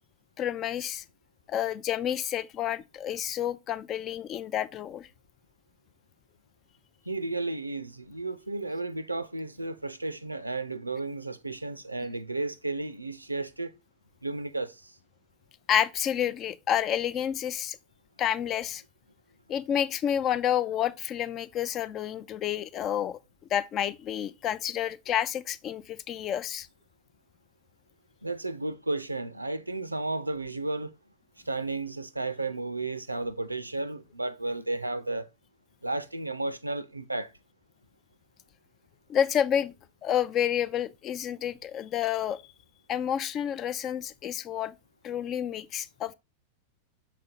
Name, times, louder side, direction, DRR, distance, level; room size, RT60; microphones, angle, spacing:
voice 1, 0.4-1.0 1.5-5.1 15.7-17.8 18.2-18.8 19.5-23.2 23.5-26.7 39.1-39.7 40.0-42.4 42.9-44.8 45.0-46.1, left 10 dB, 30° left, 0.4 m, -29 dB
voice 2, 7.1-13.7 14.2-14.9 28.2-30.9 31.5-35.3 35.8-37.3, right 2 dB, 85° right, 0.5 m, -33 dB
6.4 x 4.3 x 3.9 m
figure-of-eight pair, 90°, 0 cm